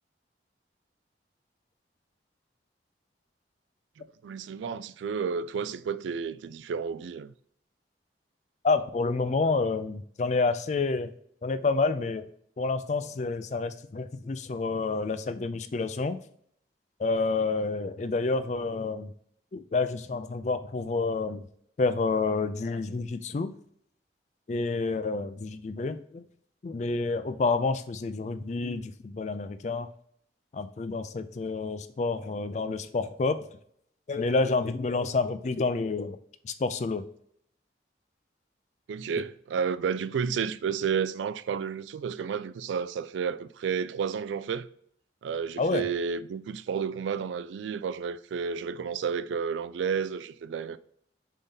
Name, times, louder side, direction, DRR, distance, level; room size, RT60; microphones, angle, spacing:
voice 1, 4.0-7.3 38.9-44.7 45.2-50.8, right 6 dB, 90° right, 0.3 m, -31 dB
voice 2, 8.6-11.1 11.4-12.3 12.6-16.2 17.0-19.1 19.5-21.4 21.8-23.5 24.5-26.2 26.6-29.9 30.5-33.4 34.1-36.2 36.4-37.0 45.6-45.8, left 3 dB, 40° left, 0.3 m, -29 dB
4.1 x 3.7 x 3.4 m
head